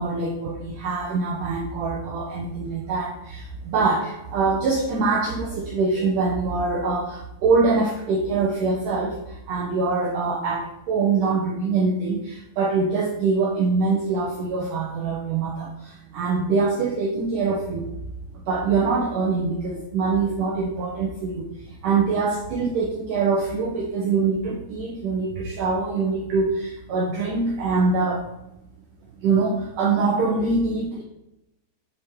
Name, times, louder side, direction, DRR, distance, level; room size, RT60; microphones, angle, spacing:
voice 1, 0.0-17.9 18.5-21.5 21.8-28.2 29.2-31.0, right 4 dB, 85° right, -1 dB, 1.8 m, -24 dB
8.1 x 7.5 x 3.7 m, 0.88 s
omnidirectional pair, 5.2 m